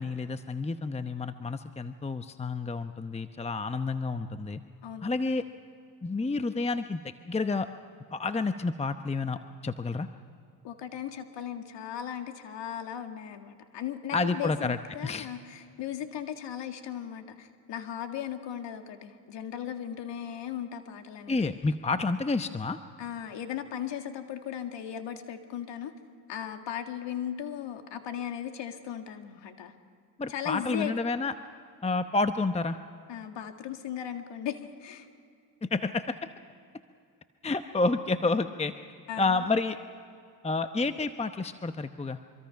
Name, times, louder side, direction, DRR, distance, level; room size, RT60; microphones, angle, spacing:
voice 1, 0.0-4.6 5.0-5.4 6.0-7.7 8.1-10.1 14.1-14.8 15.0-15.3 21.3-22.8 30.2-31.3 31.8-32.8 35.7-36.2 37.4-38.7 39.2-39.8 40.4-42.2, left 3 dB, 15° left, 9 dB, 0.9 m, -29 dB
voice 2, 10.6-21.5 23.0-25.9 26.3-29.7 30.3-30.9 33.1-35.1 39.1-39.5, left 9 dB, 70° left, 6 dB, 2.0 m, -37 dB
25.5 x 23.5 x 5.8 m, 2.4 s
supercardioid pair, 65°, 46 cm